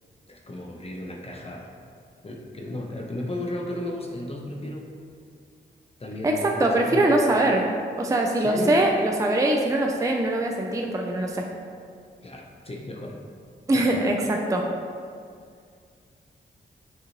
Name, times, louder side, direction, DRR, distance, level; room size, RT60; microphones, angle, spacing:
voice 1, 0.3-1.7 2.2-4.9 6.0-7.1 8.4-8.8 12.2-13.2 13.7-14.1, left 1 dB, 30° left, 0 dB, 0.6 m, -34 dB
voice 2, 6.6-11.4 13.7-14.6, right 1 dB, 15° right, 1 dB, 0.4 m, -22 dB
5.3 x 2.5 x 3.0 m, 2.2 s
cardioid pair, 45°, 20 cm